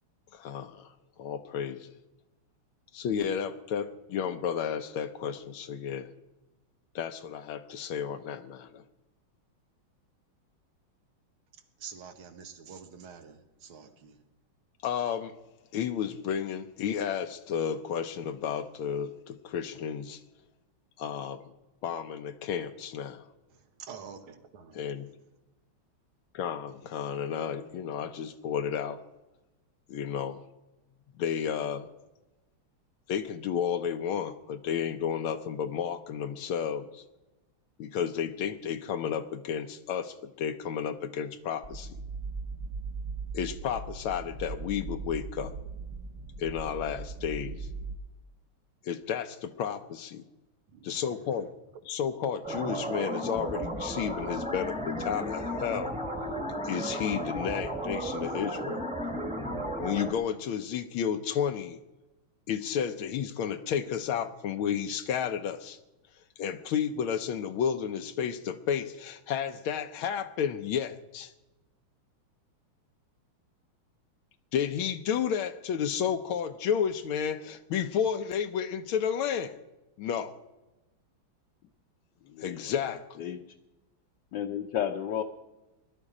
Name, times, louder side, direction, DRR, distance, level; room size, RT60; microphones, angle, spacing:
voice 1, 0.3-0.9 1.2-1.9 2.9-6.1 6.9-8.8 14.8-15.3 15.7-20.2 21.0-21.4 21.8-23.2 24.7-25.1 26.3-29.0 29.9-30.4 31.2-31.9 33.1-37.0 37.8-42.0 43.3-45.5 46.4-47.7 48.8-50.2 50.8-51.5 51.9-56.0 56.6-58.8 59.8-61.8 62.5-65.8 66.4-71.3 74.5-79.6 80.0-80.3 82.4-83.3, left 8 dB, 85° left, 1.6 m, -32 dB
voice 2, 11.8-14.2 23.5-24.9 50.7-51.5, right 6 dB, 85° right, 2.1 m, -47 dB
sound 1, 41.6-48.0, right 4 dB, 50° right, 1.1 m, -39 dB
sound 2, 52.4-60.1, equal, 5° right, 1.1 m, -34 dB
voice 3, 82.2-83.4 84.3-85.2, left 9 dB, 65° left, 1.4 m, -33 dB
20.5 x 12.0 x 4.9 m
omnidirectional pair, 2.2 m